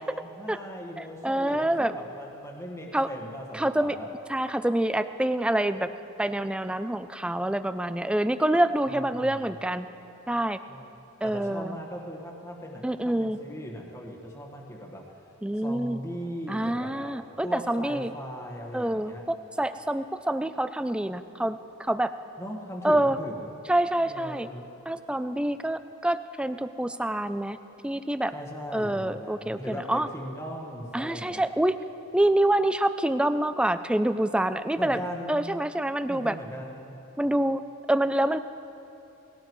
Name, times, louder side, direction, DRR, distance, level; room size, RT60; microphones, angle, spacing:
voice 1, 0.0-4.1 8.9-9.5 10.7-10.9 11.2-15.2 15.5-17.2 17.4-19.3 22.4-23.5 24.0-24.7 28.3-31.4 34.8-35.3 36.1-36.9, equal, 15° left, -1 dB, 1.4 m, -39 dB
voice 2, 1.0-1.9 2.9-3.1 3.5-4.0 4.3-5.9 6.2-9.9 10.3-10.6 11.2-11.8 12.8-13.4 15.4-16.0 16.5-18.1 18.7-22.1 22.8-23.2 23.7-24.5 24.9-27.6 27.8-28.3 28.7-30.1 30.9-31.7 32.1-35.0 35.3-36.4 37.2-37.6 37.9-38.4, right 1 dB, 5° right, 11 dB, 0.3 m, -26 dB
19.5 x 17.5 x 3.1 m, 2.9 s
head